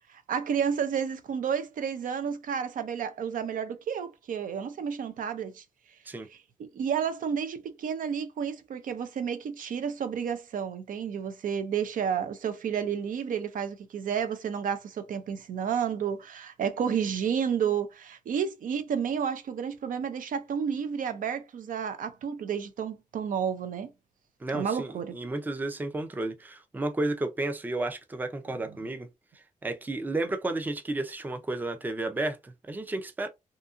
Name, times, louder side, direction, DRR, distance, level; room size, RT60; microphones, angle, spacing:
voice 1, 0.1-5.6 6.6-23.9 24.5-25.2, right 7 dB, 85° right, 0.4 m, -31 dB
voice 2, 24.4-29.1 29.3-33.3, right 2 dB, 15° right, 0.4 m, -32 dB
2.7 x 2.5 x 2.4 m
wide cardioid pair, 160°, 14 cm